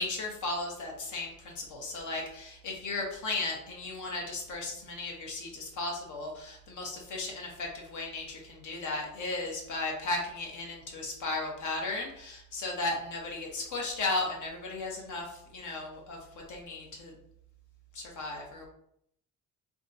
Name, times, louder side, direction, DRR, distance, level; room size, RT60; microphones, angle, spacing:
voice 1, 0.0-16.2 16.5-17.1 17.9-18.7, left 2 dB, 75° left, 0 dB, 1.1 m, -35 dB
3.6 x 2.4 x 2.6 m, 0.72 s
cardioid pair, 90°, 30 cm